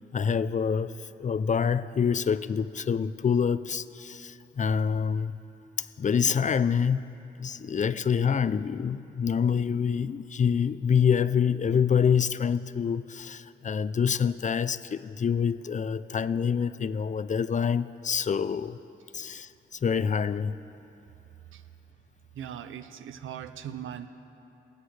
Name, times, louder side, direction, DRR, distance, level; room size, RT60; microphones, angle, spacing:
voice 1, 0.1-5.4 5.8-18.8 19.1-20.5, left 7 dB, 40° left, 0.4 m, -26 dB
voice 2, 22.3-24.1, right 9 dB, 90° right, 0.5 m, -39 dB
21.0 x 8.0 x 3.3 m
cardioid pair, 55°, 20 cm